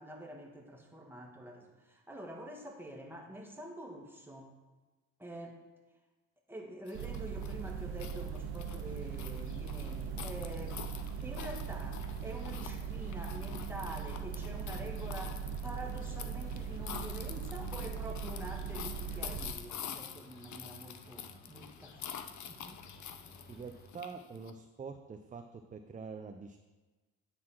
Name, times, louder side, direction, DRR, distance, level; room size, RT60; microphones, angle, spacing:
voice 1, 0.0-4.5 5.2-5.6 6.5-10.9 11.2-22.0 22.5-22.8, right 1 dB, 5° right, 0 dB, 1.8 m, -46 dB
sound 1, 6.9-24.5, left 9 dB, 50° left, 0.8 m, -47 dB
sound 2, 6.9-19.5, right 6 dB, 75° right, 0.6 m, -40 dB
sound 3, 11.0-23.9, left 1 dB, 25° left, 1.5 m, -58 dB
voice 2, 23.5-26.6, right 5 dB, 20° right, 6 dB, 0.6 m, -45 dB
9.4 x 4.1 x 6.0 m, 1.2 s
supercardioid pair, 80°, 36 cm